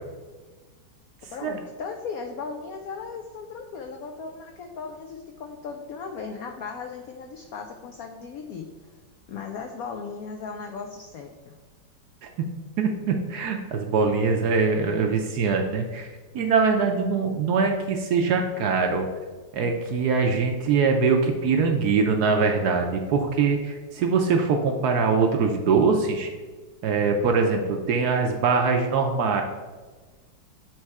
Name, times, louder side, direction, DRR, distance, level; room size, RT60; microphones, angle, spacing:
voice 1, 1.3-9.0 9.3-11.6, left 5 dB, 85° left, 4 dB, 0.8 m, -37 dB
voice 2, 12.8-16.1 16.3-19.1 19.5-26.3 26.8-29.4, right 5 dB, 70° right, 3 dB, 1.0 m, -23 dB
7.3 x 3.2 x 4.7 m, 1.3 s
omnidirectional pair, 2.1 m